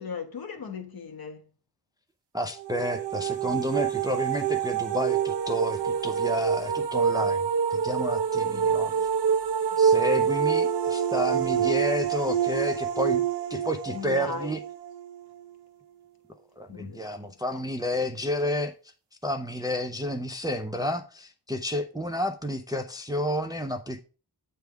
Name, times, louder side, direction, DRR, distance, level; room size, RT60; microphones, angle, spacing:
voice 1, 0.0-1.4 8.4-9.1 9.7-10.0 11.3-11.4 13.9-14.5 16.7-17.6, left 5 dB, 60° left, 1.1 m, -39 dB
voice 2, 2.3-7.4 7.7-8.9 9.8-13.2 13.5-14.6 16.6-18.7 19.2-24.0, equal, 10° right, 0.4 m, -30 dB
sound 1, 2.6-15.4, right 7 dB, 90° right, 0.8 m, -26 dB
8.0 x 3.5 x 4.6 m
wide cardioid pair, 180°, 40 cm